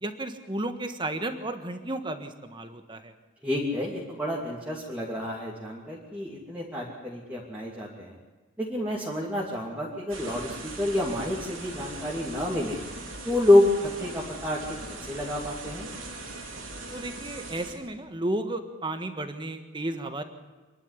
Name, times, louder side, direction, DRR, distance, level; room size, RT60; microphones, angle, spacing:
voice 1, 0.0-3.1 16.9-20.2, right 1 dB, 25° right, 7 dB, 1.5 m, -33 dB
voice 2, 3.4-8.1 8.6-12.8 13.2-15.9, left 1 dB, 5° right, -5 dB, 2.7 m, -28 dB
sound 1, 10.1-17.7, right 2 dB, 75° right, 4.0 m, -40 dB
27.0 x 11.5 x 9.9 m, 1.3 s
head